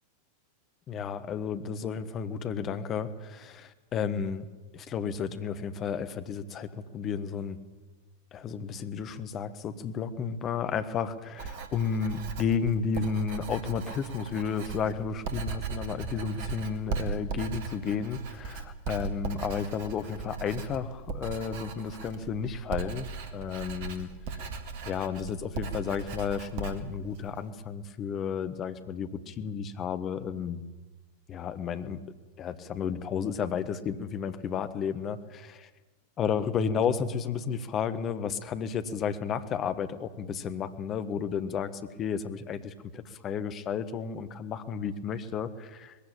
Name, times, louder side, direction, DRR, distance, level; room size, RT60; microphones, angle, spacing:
voice 1, 0.9-4.4 4.7-7.6 8.3-24.1 24.8-30.6 31.3-32.0 32.4-35.7 36.2-46.0, left 6 dB, 30° left, 11 dB, 1.3 m, -32 dB
Writing, 11.4-27.5, right 4 dB, 50° right, 2.1 m, -38 dB
20.5 x 15.5 x 8.9 m, 1.3 s
figure-of-eight pair, 90°, 0 cm